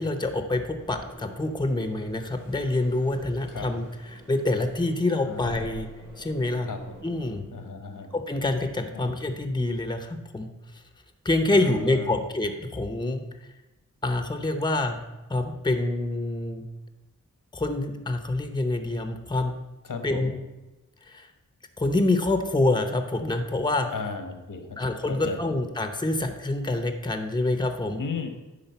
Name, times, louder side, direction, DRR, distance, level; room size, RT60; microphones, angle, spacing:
voice 1, 0.0-5.9 6.2-6.7 7.0-7.4 8.1-10.5 11.2-13.2 14.0-15.0 15.3-16.7 17.5-19.5 20.0-20.4 21.1-21.3 21.8-23.9 24.8-28.0, left 2 dB, 15° left, 7 dB, 0.7 m, -26 dB
sound 1, 0.8-7.4, right 2 dB, 80° right, 2.8 m, -49 dB
voice 2, 5.2-5.9 6.6-7.0 7.5-8.1 8.9-9.1 11.5-12.1 19.8-20.3 23.9-24.8 25.1-25.4 28.0-28.3, left 5 dB, 85° left, 6 dB, 1.2 m, -35 dB
10.0 x 3.7 x 6.9 m, 1.1 s
wide cardioid pair, 95°, 32 cm